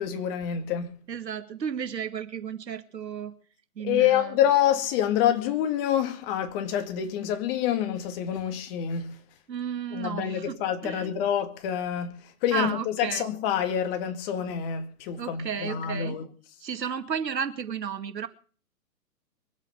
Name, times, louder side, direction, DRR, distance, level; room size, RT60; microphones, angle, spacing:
voice 1, 0.0-0.9 3.8-9.2 9.9-16.3, left 10 dB, 35° left, 2.3 m, -27 dB
voice 2, 1.1-3.3 3.8-4.4 9.5-11.1 12.5-13.3 15.2-16.2 16.6-18.3, right 7 dB, 80° right, 2.4 m, -33 dB
23.0 x 8.4 x 6.8 m
hypercardioid pair, 135°, 49 cm